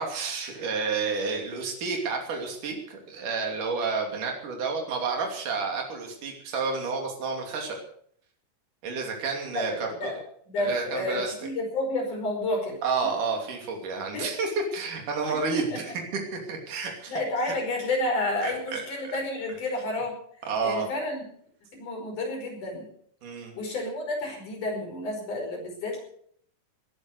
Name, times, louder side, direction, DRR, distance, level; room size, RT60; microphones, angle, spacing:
voice 1, 0.0-7.8 8.8-10.2 10.6-11.3 12.8-15.9 16.5-17.2 17.5-17.6 18.4-18.8 20.5-20.9 23.2-23.5, right 4 dB, 75° right, 2 dB, 4.4 m, -30 dB
voice 2, 9.5-10.2 10.5-12.8 14.1-14.3 15.3-15.4 15.7-15.8 16.8-20.2 20.6-21.2 21.7-22.9 23.5-26.0, left 2 dB, 70° left, 1 dB, 6.9 m, -30 dB
19.5 x 11.0 x 6.7 m, 0.62 s
omnidirectional pair, 3.7 m